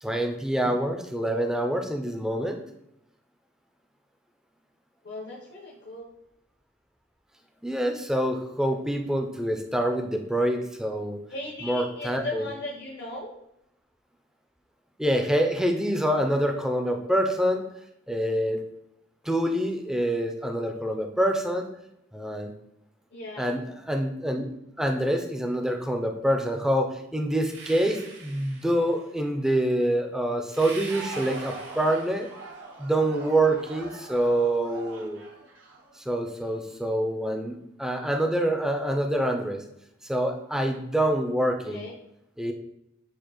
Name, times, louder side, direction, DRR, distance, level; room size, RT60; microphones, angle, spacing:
voice 1, 0.0-2.6 7.6-11.2 11.6-12.5 15.0-17.6 18.1-18.6 19.2-21.7 22.1-22.5 23.4-24.5 24.8-32.3 32.8-35.2 36.1-39.6 40.1-41.8 42.4-42.5, right 1 dB, 5° right, 4 dB, 0.4 m, -26 dB
voice 2, 5.0-6.1 11.3-13.3 23.1-23.6 41.7-41.9, left 2 dB, 60° left, -4 dB, 0.7 m, -37 dB
sound 1, 27.5-29.1 30.5-32.6, right 3 dB, 60° right, 0.9 m, -44 dB
Crowd, 30.7-36.5, right 3 dB, 85° right, 0.8 m, -43 dB
6.5 x 2.4 x 3.0 m, 0.79 s
head